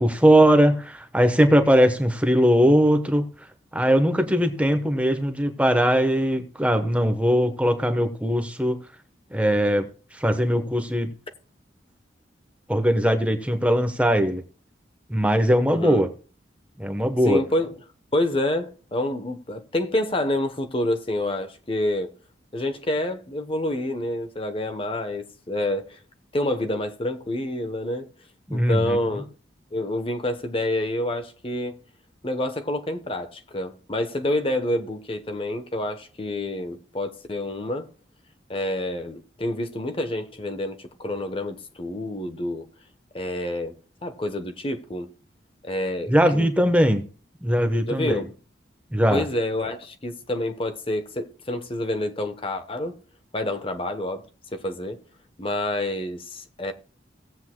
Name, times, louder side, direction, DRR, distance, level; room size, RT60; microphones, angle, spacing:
voice 1, 0.0-3.3 3.7-8.8 9.3-11.1 12.7-14.4 15.1-16.1 16.8-17.4 28.5-29.0 46.1-47.1 47.4-48.2 48.9-49.2, equal, 5° right, 1.0 m, -20 dB
voice 2, 15.7-16.0 17.2-17.8 18.1-22.1 22.5-26.0 26.3-28.1 28.5-29.2 29.7-31.8 32.2-37.9 38.5-42.6 43.1-43.8 44.0-45.1 45.6-46.5 47.9-48.3 49.1-52.9 53.3-54.2 54.5-55.0 55.4-56.7, left 1 dB, 30° left, 0.9 m, -28 dB
18.0 x 8.0 x 2.2 m
head